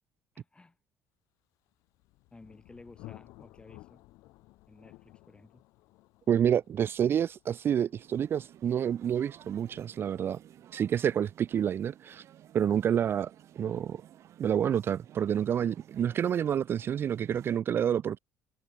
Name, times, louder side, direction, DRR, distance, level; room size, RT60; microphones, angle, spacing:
voice 1, 0.3-0.8 2.3-4.0 4.7-5.6, left 3 dB, 20° left, 7.9 m, -54 dB
Thunder, 1.7-13.2, left 20 dB, 85° left, 5.0 m, -56 dB
voice 2, 6.3-10.4 10.7-12.2 12.5-13.3 13.6-14.0 14.4-18.2, right 9 dB, 45° right, 0.4 m, -28 dB
sound 1, 8.0-17.6, right 11 dB, 60° right, 5.7 m, -55 dB
cardioid pair, 95°, 5 cm